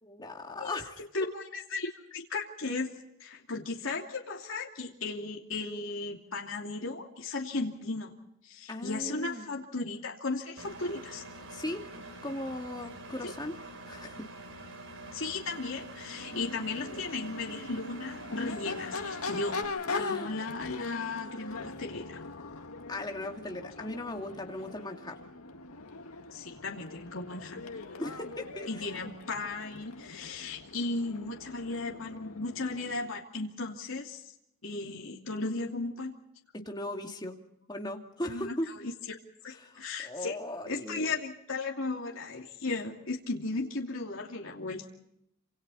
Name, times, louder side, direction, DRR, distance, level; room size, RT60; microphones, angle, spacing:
voice 1, 0.0-1.0 8.7-9.6 11.5-11.8 12.2-13.5 13.9-14.2 19.9-20.3 22.9-25.2 28.0-28.8 36.7-37.4 37.7-38.7 39.5-41.2, left 1 dB, 20° left, 3 dB, 2.4 m, -38 dB
voice 2, 1.1-2.9 3.2-8.1 8.4-11.2 13.2-13.3 15.1-19.6 19.9-22.2 26.3-27.6 28.7-34.2 34.6-36.1 38.2-38.9 39.4-40.4 40.6-44.9, left 3 dB, 65° left, 0 dB, 2.8 m, -36 dB
Engine, 10.6-19.6, right 2 dB, 65° right, 4.2 m, -46 dB
Crowd / Race car auto racing / Accelerating revving vroom, 16.0-33.1, left 3 dB, 90° left, 1.9 m, -41 dB
29.0 x 27.0 x 4.2 m, 0.79 s
head